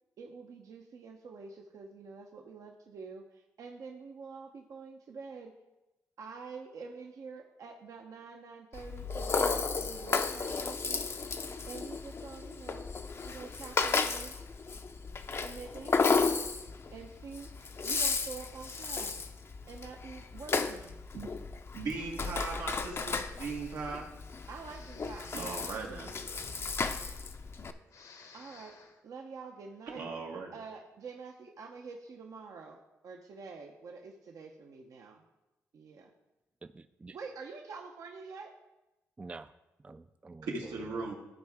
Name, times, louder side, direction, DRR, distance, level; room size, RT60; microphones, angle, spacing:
voice 1, 0.2-5.5 6.2-11.1 11.7-12.9 13.2-14.4 15.4-16.4 16.9-17.5 17.8-19.2 19.7-21.0 24.5-26.6 28.3-28.8 29.0-30.1 30.5-35.2 35.7-36.1 37.1-38.5, right 5 dB, 65° right, 2 dB, 0.7 m, -47 dB
Rattle (instrument), 8.7-27.7, left 4 dB, 45° left, 0.5 m, -34 dB
voice 2, 21.7-24.1 25.3-26.1 29.9-30.5 40.4-41.1, right 4 dB, 90° right, -1 dB, 1.5 m, -38 dB
Breathing, 23.1-24.1 24.7-27.6 27.8-29.0, left 3 dB, 65° left, 1.0 m, -54 dB
voice 3, 36.6-37.2 39.2-39.5 39.8-41.1, right 3 dB, 20° right, 11 dB, 0.3 m, -48 dB
13.5 x 4.7 x 3.5 m, 0.98 s
cardioid pair, 75°, 6 cm